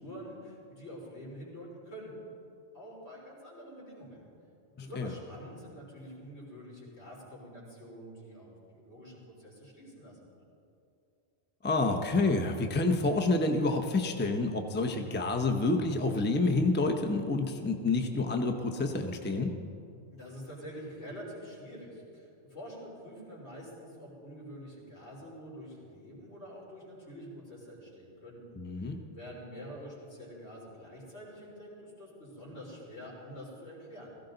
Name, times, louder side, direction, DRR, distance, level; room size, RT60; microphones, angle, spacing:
voice 1, 0.0-2.3 2.7-4.3 4.8-10.4 20.1-34.2, equal, 70° left, -5 dB, 4.2 m, -47 dB
voice 2, 4.8-5.1 11.6-19.5 28.6-29.0, left 3 dB, 10° left, 4 dB, 0.6 m, -28 dB
17.0 x 15.0 x 3.9 m, 2.5 s
omnidirectional pair, 1.2 m